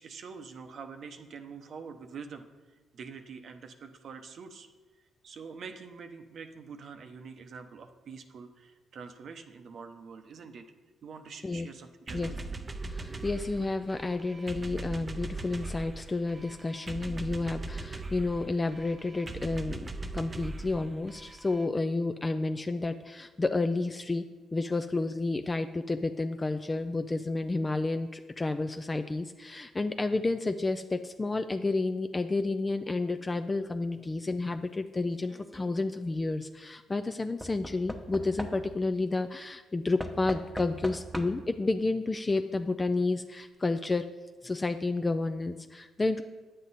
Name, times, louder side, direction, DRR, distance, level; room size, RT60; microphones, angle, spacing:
voice 1, 0.0-2.5 2.9-4.7 5.2-10.7 11.0-12.4, right 5 dB, 60° right, 7 dB, 0.8 m, -45 dB
sound 1, 12.1-21.6, right 2 dB, 25° right, 0.5 m, -40 dB
voice 2, 12.9-24.2 24.5-44.1 44.4-46.2, left 3 dB, 20° left, 8 dB, 0.4 m, -31 dB
Knock / Wood, 35.2-35.7 37.4-38.9 40.0-41.6 42.6-42.7 42.9-43.0, equal, ahead, 0.8 m, -40 dB
9.6 x 7.7 x 4.1 m, 1.3 s
cardioid pair, 90°, 0 cm